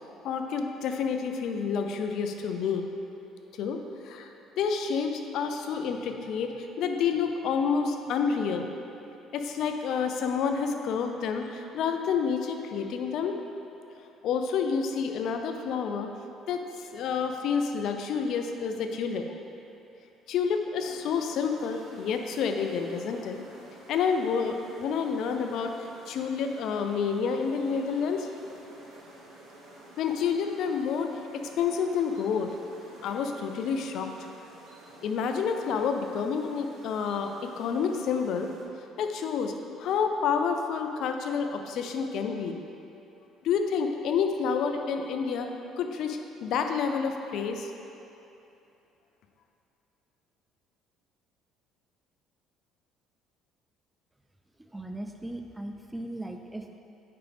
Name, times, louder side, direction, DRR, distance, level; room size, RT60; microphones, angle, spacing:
voice 1, 0.2-2.9 3.6-3.8 4.0-4.3 4.6-8.7 9.3-13.4 14.2-16.1 16.5-19.2 20.3-23.4 23.9-25.7 26.1-28.3 30.0-32.5 33.0-34.1 35.0-38.5 39.0-39.5 39.8-42.6 43.4-45.5 45.8-47.7, left 6 dB, 70° left, 5 dB, 0.6 m, -29 dB
sound 1, 20.8-38.6, right 1 dB, 80° right, 1.4 m, -50 dB
voice 2, 54.6-56.8, right 1 dB, 10° right, 4 dB, 0.4 m, -38 dB
8.7 x 5.1 x 3.5 m, 2.8 s
supercardioid pair, 85°, 0 cm